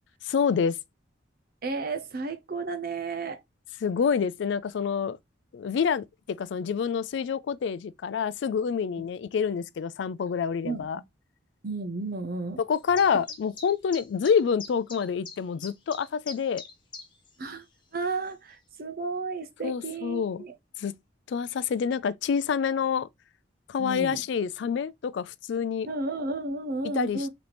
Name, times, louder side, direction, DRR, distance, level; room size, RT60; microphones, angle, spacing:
voice 1, 0.2-0.7 3.8-5.2 5.5-6.0 6.4-11.0 12.6-16.6 19.6-20.5 20.8-20.9 21.3-23.1 23.7-25.9 26.9-27.3, left 6 dB, 65° left, 0.3 m, -27 dB
voice 2, 1.6-3.4 10.6-10.9 11.6-12.6 17.4-17.6 17.9-20.5 23.8-24.2 25.9-27.3, right 3 dB, 50° right, 0.6 m, -33 dB
sound 1, 12.7-17.3 17.6-17.7 18.3-18.4, left 5 dB, 25° left, 0.9 m, -42 dB
4.0 x 2.9 x 3.3 m
head